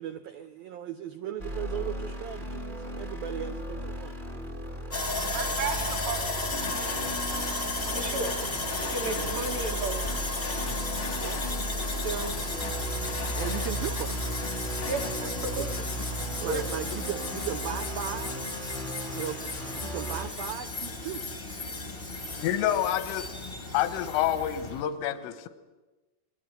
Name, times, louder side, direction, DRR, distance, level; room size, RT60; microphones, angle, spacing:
voice 1, 0.0-4.2 11.2-11.4 13.4-14.3 16.4-18.4 19.1-19.4 19.8-21.3, right 10 dB, 80° right, 8 dB, 2.1 m, -37 dB
sound 1, 1.4-20.3, equal, 20° right, 1.2 m, -36 dB
Sawing, 4.9-24.8, left 2 dB, 35° left, 0.8 m, -34 dB
voice 2, 5.3-6.3 7.9-8.3 8.8-10.0 12.0-12.3 14.9-15.7 16.4-16.6, right 3 dB, 60° right, 0 dB, 4.1 m, -33 dB
sound 2, 6.6-7.5 7.9-9.7 10.0-11.5 11.8-11.9 12.2-14.1 14.4-15.2, left 6 dB, 60° left, 1.6 m, -40 dB
voice 3, 22.3-23.4 23.7-25.5, left 11 dB, 85° left, 11 dB, 3.8 m, -28 dB
28.5 x 22.0 x 9.4 m, 1.2 s
omnidirectional pair, 5.7 m